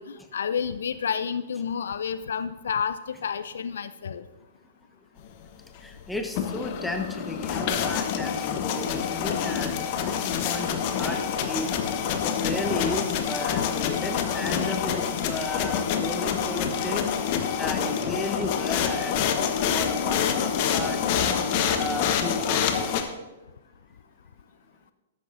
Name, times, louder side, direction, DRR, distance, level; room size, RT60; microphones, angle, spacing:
voice 1, 0.0-4.2, left 7 dB, 65° left, 13 dB, 0.4 m, -30 dB
voice 2, 5.8-11.2 11.5-11.7 12.2-19.4 19.7-21.4 21.8-23.1, left 1 dB, 5° left, 4 dB, 1.3 m, -34 dB
sound 1, 6.2-23.0, left 8 dB, 45° left, 1.2 m, -27 dB
13.0 x 12.0 x 2.7 m, 1.1 s
figure-of-eight pair, 110°, 0 cm